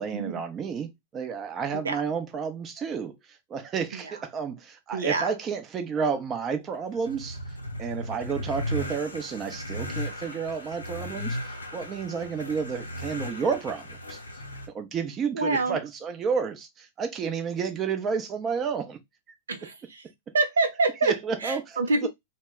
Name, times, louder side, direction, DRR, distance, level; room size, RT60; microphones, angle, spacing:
voice 1, 0.0-7.4 7.8-14.2 14.7-19.0 21.0-22.1, right 6 dB, 25° right, 0.6 m, -31 dB
voice 2, 4.9-5.3 15.3-15.8 19.5-20.0 20.3-21.2 21.4-22.1, right 3 dB, 75° right, 0.5 m, -26 dB
sound 1, 6.9-14.7, left 1 dB, 85° left, 0.7 m, -36 dB
2.2 x 2.1 x 3.4 m
figure-of-eight pair, 100°, 0 cm